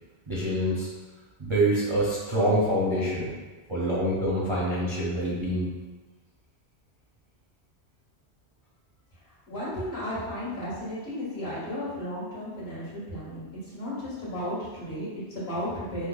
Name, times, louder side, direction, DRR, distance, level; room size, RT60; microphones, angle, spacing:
voice 1, 0.3-0.9 1.4-3.3 3.7-5.7, right 1 dB, 35° right, -7 dB, 0.5 m, -26 dB
voice 2, 9.5-16.1, equal, 65° left, -10 dB, 1.8 m, -34 dB
5.4 x 2.0 x 2.3 m, 1.3 s
omnidirectional pair, 1.2 m